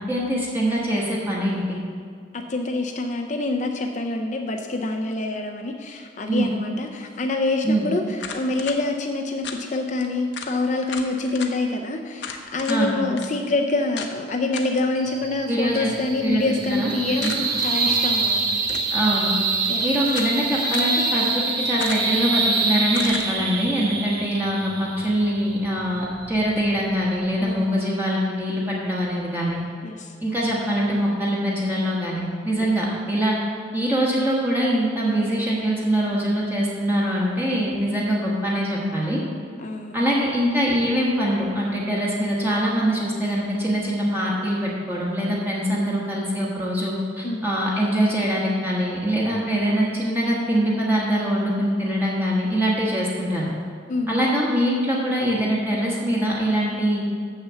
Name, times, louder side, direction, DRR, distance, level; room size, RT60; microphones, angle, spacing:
voice 1, 0.0-1.8 6.3-6.5 7.6-7.9 12.7-13.0 15.5-15.9 16.2-16.4 16.7-16.9 17.2-17.3 18.9-19.3 19.8-29.6 30.2-33.4 33.7-39.2 39.9-53.5 54.1-57.0, equal, 10° right, -5 dB, 1.3 m, -23 dB
voice 2, 2.3-18.8 19.7-20.0 27.4-28.0 29.8-30.1 32.6-32.8 39.6-40.1 47.2-47.4 53.9-54.3, left 2 dB, 40° left, 3 dB, 0.5 m, -26 dB
sound 1, 8.2-8.8 9.4-9.6 10.0-10.1 10.3-10.5 10.9-11.5 12.2-12.8 13.2-13.3 14.0-14.1 14.5-14.8 17.2-17.7 18.6-19.0 19.6-20.4 20.7-20.9 21.8-22.2 22.9-23.3, left 6 dB, 70° left, 0.8 m, -34 dB
sound 2, 15.0-27.6, right 4 dB, 60° right, 1.0 m, -26 dB
6.6 x 6.3 x 7.4 m, 2.1 s
head